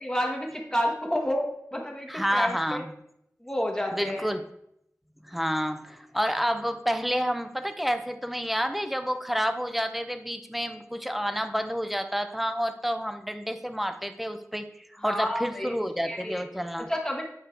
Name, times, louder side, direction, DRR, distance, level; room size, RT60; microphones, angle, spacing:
voice 1, 0.0-2.8 3.4-4.3 15.0-16.4 16.9-17.2, equal, 15° left, 0 dB, 1.2 m, -30 dB
voice 2, 2.1-2.9 3.9-4.4 5.2-16.9, equal, ahead, 8 dB, 0.7 m, -29 dB
9.1 x 4.7 x 4.4 m, 0.77 s
wide cardioid pair, 50°, 6 cm